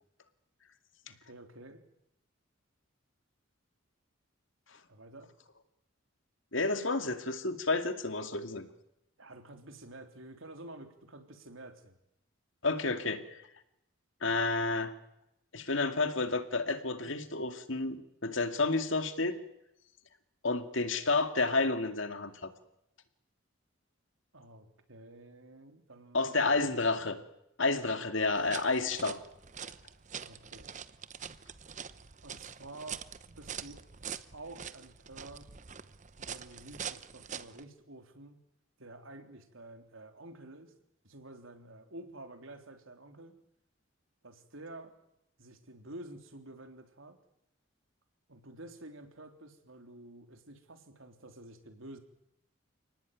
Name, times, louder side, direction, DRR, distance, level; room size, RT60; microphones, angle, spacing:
voice 1, 1.1-1.8 4.9-5.3 9.2-12.0 24.3-26.8 30.2-30.7 32.2-33.9 34.3-35.5 36.2-38.4 38.8-40.7 41.0-43.4 44.2-44.9 45.4-47.2 48.3-52.0, right 2 dB, 75° right, 6 dB, 3.5 m, -50 dB
voice 2, 6.5-8.7 12.6-13.4 14.2-14.9 15.5-19.4 20.4-22.5 26.1-27.2 27.6-29.2, left 3 dB, 65° left, 8 dB, 2.3 m, -30 dB
sound 1, 28.3-37.6, right 7 dB, 35° right, 0.9 m, -44 dB
29.5 x 19.0 x 9.4 m, 0.83 s
head